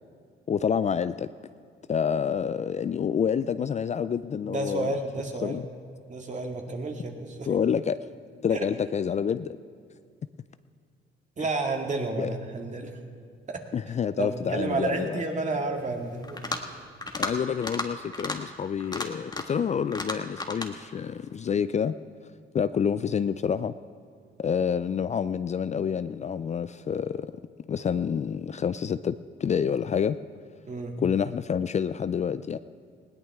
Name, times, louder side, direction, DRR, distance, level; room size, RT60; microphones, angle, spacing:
voice 1, 0.5-1.3 1.9-5.0 5.4-5.7 7.5-8.0 8.4-9.6 12.2-12.3 13.7-15.2 17.2-21.9 22.5-23.7 24.4-27.3 27.7-30.2 31.0-32.6, left 7 dB, 35° left, 13 dB, 0.4 m, -28 dB
voice 2, 4.5-5.6 6.1-7.5 8.5-8.6 11.4-12.9 13.5-13.6 14.2-16.4 30.7-31.0, right 3 dB, 40° right, 2 dB, 2.1 m, -31 dB
sound 1, 16.2-16.7 17.0-17.3 17.6-17.9 18.1-18.4 18.8-19.6 19.9-20.7, left 2 dB, 20° left, 1.6 m, -32 dB
20.0 x 18.0 x 3.6 m, 2.2 s
cardioid pair, 90°, 20 cm